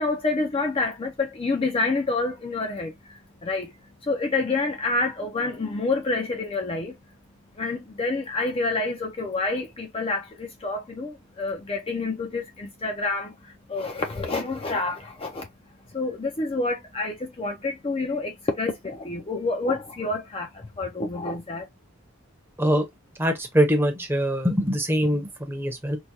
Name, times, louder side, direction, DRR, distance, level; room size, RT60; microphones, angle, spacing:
voice 1, 0.0-3.7 4.0-6.9 7.6-15.5 15.9-21.7, left 3 dB, 25° left, 0.4 m, -28 dB
voice 2, 23.2-26.0, equal, 10° right, 0.7 m, -23 dB
4.5 x 2.2 x 2.6 m
head